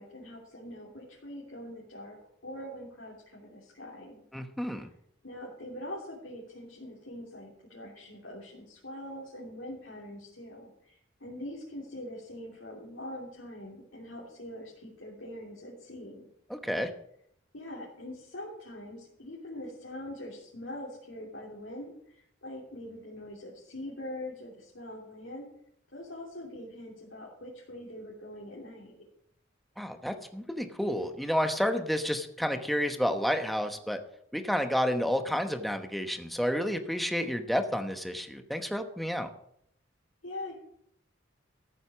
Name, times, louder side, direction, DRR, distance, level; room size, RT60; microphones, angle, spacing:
voice 1, 0.0-2.2 2.4-4.2 4.7-4.9 5.2-16.3 17.5-25.5 25.9-29.0 40.2-40.5, left 1 dB, 75° left, -4 dB, 3.1 m, -43 dB
voice 2, 4.3-4.9 16.5-16.9 29.8-34.0 34.3-39.3, equal, ahead, 6 dB, 1.0 m, -30 dB
14.0 x 7.9 x 6.2 m, 0.71 s
head